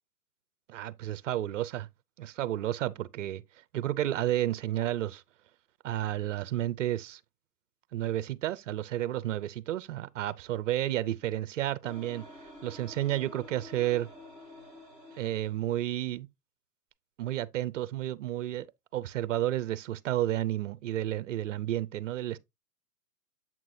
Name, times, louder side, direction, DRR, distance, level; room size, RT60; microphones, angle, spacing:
voice 1, 0.7-1.9 2.2-3.4 3.7-5.2 5.8-7.2 7.9-12.3 12.6-14.1 15.2-16.3 17.2-18.7 18.9-22.4, right 13 dB, 50° right, 0.6 m, -31 dB
sound 1, 11.8-15.6, left 1 dB, 10° left, 1.4 m, -49 dB
7.6 x 6.0 x 2.6 m
hypercardioid pair, 145°, 48 cm